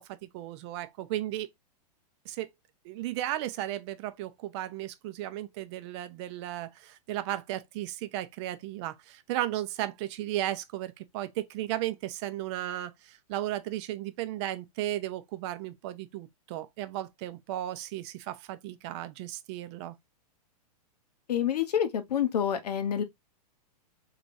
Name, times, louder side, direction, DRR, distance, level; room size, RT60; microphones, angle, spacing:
voice 1, 0.0-1.5 2.3-2.5 2.8-20.0, right 13 dB, 45° right, 0.6 m, -35 dB
voice 2, 21.3-23.0, left 9 dB, 75° left, 0.9 m, -27 dB
3.4 x 3.1 x 2.6 m
hypercardioid pair, 120°, 20 cm